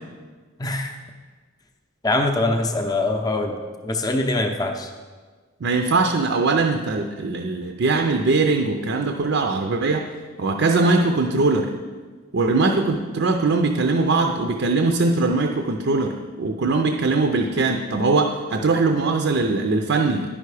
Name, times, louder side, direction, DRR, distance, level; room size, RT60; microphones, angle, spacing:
voice 1, 0.6-1.0 2.0-3.6 3.8-4.9, left 2 dB, 20° left, 4 dB, 0.6 m, -23 dB
voice 2, 5.6-10.1 10.4-11.7 12.3-20.3, right 3 dB, 55° right, 3 dB, 0.5 m, -21 dB
10.0 x 5.7 x 4.8 m, 1.5 s
head